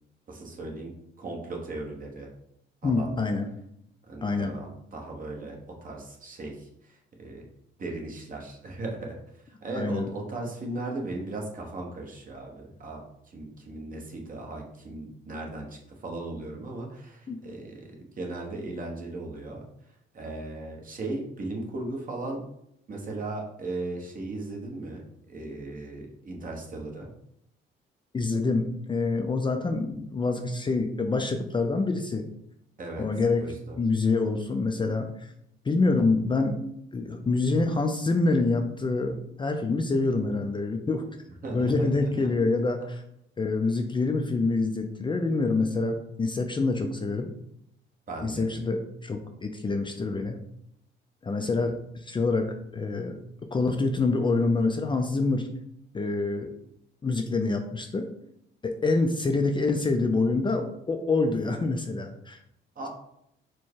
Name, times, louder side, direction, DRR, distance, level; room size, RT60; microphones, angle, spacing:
voice 1, 0.3-0.9 1.2-2.3 2.8-3.1 4.1-7.5 7.8-19.7 20.1-22.4 22.9-27.1 32.8-33.1 33.4-33.8 41.4-42.3 48.1-48.5 62.8-62.9, right 2 dB, 45° right, 0 dB, 1.1 m, -37 dB
voice 2, 2.8-3.5 4.2-4.5 9.7-10.1 17.3-17.4 28.1-32.2 33.0-33.4 33.8-35.3 35.6-36.6 36.9-41.0 41.5-43.0 43.4-47.3 48.2-50.4 51.2-52.5 52.7-53.2 53.5-55.5 55.9-56.5 57.0-58.1 58.6-62.4, left 3 dB, 25° left, 5 dB, 0.4 m, -26 dB
4.5 x 2.2 x 4.5 m, 0.76 s
cardioid pair, 90°, 20 cm